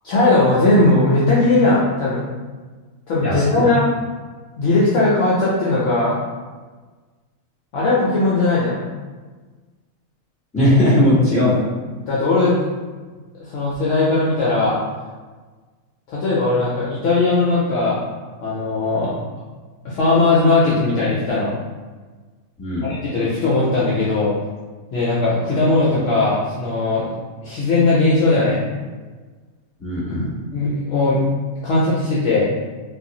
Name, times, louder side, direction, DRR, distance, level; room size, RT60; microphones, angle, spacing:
voice 1, 0.0-2.2 3.1-3.8 4.6-6.2 7.7-8.8 11.9-12.7 13.3-14.8 16.1-18.0 18.4-19.2 19.8-21.5 22.8-24.3 24.9-27.1 27.4-28.6 30.5-31.2 31.6-32.4, left 2 dB, 65° left, -7 dB, 0.8 m, -18 dB
voice 2, 10.5-11.7 22.6-22.9 29.8-30.4, left 1 dB, 10° left, -11 dB, 1.2 m, -18 dB
2.6 x 2.4 x 2.7 m, 1.4 s
omnidirectional pair, 1.5 m